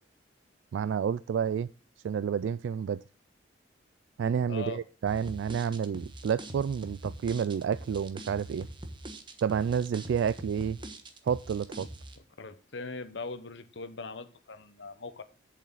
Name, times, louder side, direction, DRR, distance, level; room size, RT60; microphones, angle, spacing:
voice 1, 0.7-1.7 2.0-3.0 4.2-8.7 9.4-10.8 11.2-11.9, right 7 dB, 75° right, 0.3 m, -29 dB
voice 2, 4.5-4.8 12.4-15.2, left 3 dB, 65° left, 0.9 m, -40 dB
sound 1, 5.1-12.2, right 1 dB, 25° right, 1.2 m, -43 dB
8.4 x 7.4 x 3.9 m
head